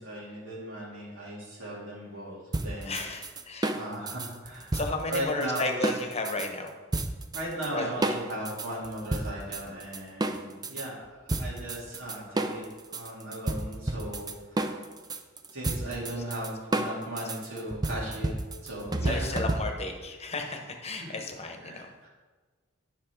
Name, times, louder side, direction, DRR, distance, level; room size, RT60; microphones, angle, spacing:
voice 1, 0.0-3.0 3.7-5.9 7.3-14.7 15.5-18.3 18.6-19.3 21.0-21.1 21.6-22.1, right 1 dB, 75° right, -5 dB, 2.6 m, -37 dB
sound 1, 2.5-6.5 6.9-7.7 8.0-10.9 11.3-20.0, right 2 dB, 20° right, 0.5 m, -31 dB
voice 2, 2.8-3.7 4.7-6.7 7.7-8.2 15.7-15.8 16.1-16.2 19.0-21.9, left 2 dB, 30° left, 4 dB, 1.1 m, -34 dB
10.5 x 6.0 x 4.5 m, 1.3 s
head